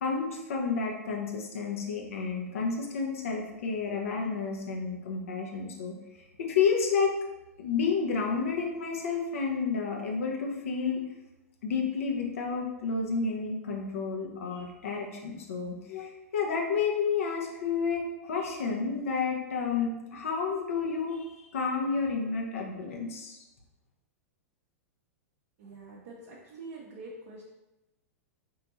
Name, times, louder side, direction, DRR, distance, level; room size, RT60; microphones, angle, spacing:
voice 1, 0.0-7.1 7.6-11.0 11.6-23.4, left 5 dB, 60° left, 0 dB, 0.8 m, -30 dB
voice 2, 25.6-27.4, right 3 dB, 50° right, -4 dB, 0.7 m, -45 dB
4.2 x 2.7 x 2.8 m, 0.98 s
figure-of-eight pair, 95°, 8 cm